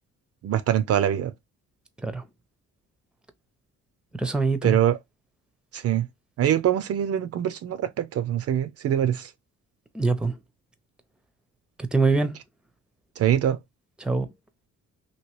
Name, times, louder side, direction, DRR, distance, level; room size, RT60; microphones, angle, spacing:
voice 1, 0.4-1.3 4.6-5.0 5.7-6.1 6.4-9.3 13.2-13.6, right 10 dB, 55° right, 0.4 m, -23 dB
voice 2, 4.2-4.8 9.9-10.4 11.8-12.4 14.0-14.3, right 3 dB, 5° right, 0.6 m, -24 dB
3.0 x 2.7 x 3.0 m
cardioid pair, 90°, 30 cm